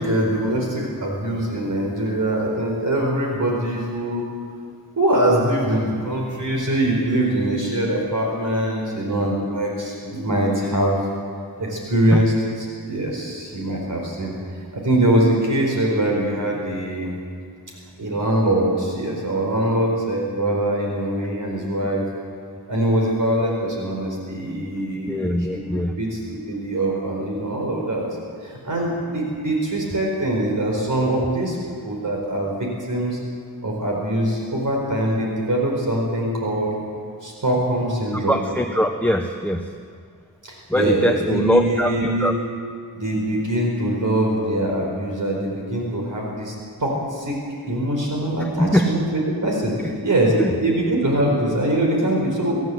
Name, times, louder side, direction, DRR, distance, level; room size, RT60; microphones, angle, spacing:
voice 1, 0.0-4.2 5.0-11.0 11.6-14.3 14.7-17.1 18.0-22.0 22.7-28.0 28.4-31.6 31.8-33.2 33.6-36.7 37.2-38.3 40.4-42.3 42.9-46.5 46.8-47.4 47.7-50.3 50.6-52.6, right 1 dB, 50° right, -1 dB, 4.6 m, -23 dB
voice 2, 25.1-25.9 38.3-39.7 40.7-42.3 48.4-48.9 50.4-50.5, equal, 5° left, 3 dB, 0.8 m, -21 dB
24.5 x 15.5 x 7.8 m, 2.1 s
wide cardioid pair, 170°, 39 cm